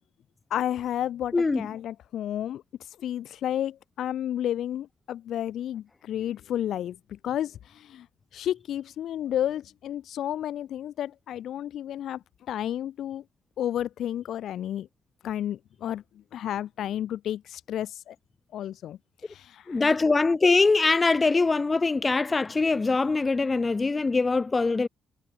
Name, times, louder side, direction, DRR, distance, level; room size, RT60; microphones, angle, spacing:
voice 1, 0.5-6.9 7.2-8.1 8.3-12.2 12.5-13.2 13.6-14.9 15.2-16.0 16.3-18.1 18.5-19.0 19.2-19.8, left 11 dB, 70° left, 0.7 m, -31 dB
voice 2, 1.3-1.7 19.7-24.9, left 3 dB, 25° left, 0.4 m, -23 dB
cardioid pair, 90°, 0 cm